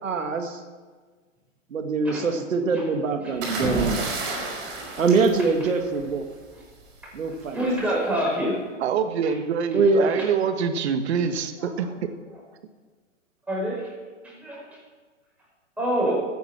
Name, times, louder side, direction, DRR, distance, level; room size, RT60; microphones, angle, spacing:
voice 1, 0.0-0.6 1.7-4.0 5.0-6.2 7.1-7.6 9.7-10.2, right 4 dB, 85° right, 5 dB, 2.1 m, -23 dB
sound 1, 3.4-6.2 7.4-7.7, right 2 dB, 30° right, 4.6 m, -30 dB
voice 2, 7.5-8.6 11.6-11.7 13.5-13.9 14.2-14.6 15.8-16.3, right 1 dB, 5° right, -4 dB, 5.1 m, -26 dB
voice 3, 8.8-11.8, right 6 dB, 55° right, 8 dB, 1.5 m, -25 dB
15.0 x 9.3 x 6.0 m, 1.4 s
hypercardioid pair, 135°, 38 cm